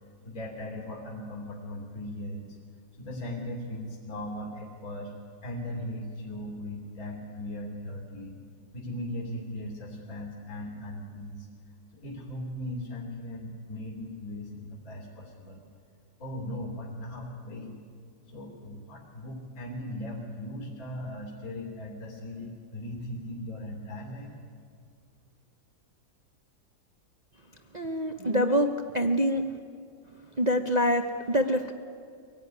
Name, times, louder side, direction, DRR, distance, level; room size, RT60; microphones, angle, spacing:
voice 1, 0.2-2.6 3.0-5.1 5.4-8.4 8.7-11.5 11.9-15.6 16.2-17.8 18.3-24.3, left 1 dB, 45° left, -1 dB, 3.6 m, -38 dB
voice 2, 27.7-29.4 30.4-31.7, equal, 35° right, 5 dB, 0.7 m, -25 dB
24.0 x 17.5 x 9.6 m, 2.3 s
omnidirectional pair, 2.1 m